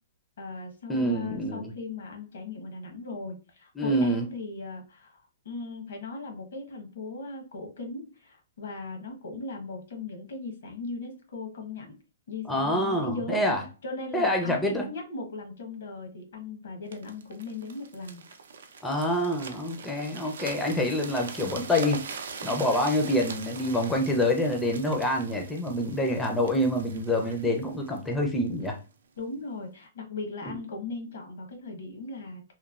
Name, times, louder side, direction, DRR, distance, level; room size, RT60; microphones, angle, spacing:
voice 1, 0.4-11.9 12.3-13.4 13.8-18.2 29.2-32.5, left 3 dB, 75° left, 3 dB, 0.9 m, -38 dB
voice 2, 0.9-1.7 3.8-4.3 12.5-13.6 14.1-14.9 18.8-28.8, left 1 dB, 5° left, 2 dB, 0.4 m, -26 dB
sound 1, 16.9-28.8 29.4-29.5, right 5 dB, 80° right, 0.4 m, -42 dB
3.0 x 2.0 x 2.3 m, 0.34 s
hypercardioid pair, 155°, 0 cm